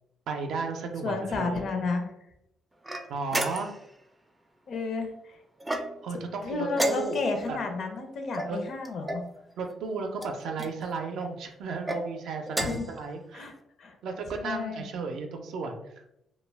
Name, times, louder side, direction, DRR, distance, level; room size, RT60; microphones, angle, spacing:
voice 1, 0.3-1.7 3.1-3.7 6.0-7.6 8.4-8.6 9.6-13.5 14.0-15.9, right 4 dB, 75° right, 4 dB, 0.4 m, -34 dB
voice 2, 1.0-2.1 4.7-5.4 6.4-9.2 12.6-12.9 13.3-13.5 13.8-13.9 14.4-14.8, left 3 dB, 55° left, 4 dB, 0.5 m, -31 dB
sound 1, 2.8-3.9 5.6-6.2 6.7-7.4 8.3-9.3 10.2-10.7 11.7-12.0 12.5-12.9, right 1 dB, 10° right, 0.3 m, -33 dB
2.2 x 2.1 x 3.3 m, 0.80 s
cardioid pair, 90°, 0 cm